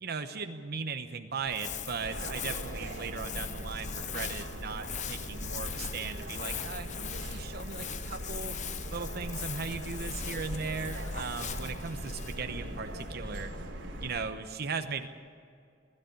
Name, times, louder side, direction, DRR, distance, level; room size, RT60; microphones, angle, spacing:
voice 1, 0.0-8.6 8.9-13.5 14.0-15.1, right 5 dB, 55° right, 7 dB, 0.9 m, -38 dB
Crumpling crinkling, 1.4-13.8, left 7 dB, 40° left, 0.7 m, -41 dB
sound 1, 2.0-14.2, right 1 dB, 80° right, 2.9 m, -40 dB
20.5 x 13.0 x 10.0 m, 2.3 s
head